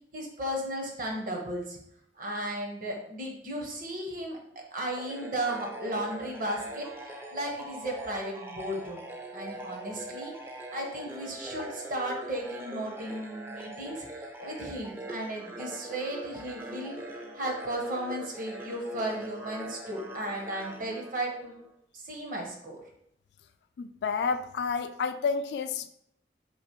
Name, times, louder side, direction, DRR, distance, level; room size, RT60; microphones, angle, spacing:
voice 1, 0.1-1.8 2.2-9.0 9.3-10.3 10.7-17.0 17.3-21.5 21.9-22.8, right 1 dB, 50° right, 1 dB, 0.8 m, -35 dB
sound 1, 5.0-21.7, right 1 dB, 15° right, 0.4 m, -42 dB
voice 2, 23.8-25.9, left 5 dB, 65° left, 9 dB, 0.3 m, -30 dB
3.1 x 2.9 x 4.4 m, 0.72 s
head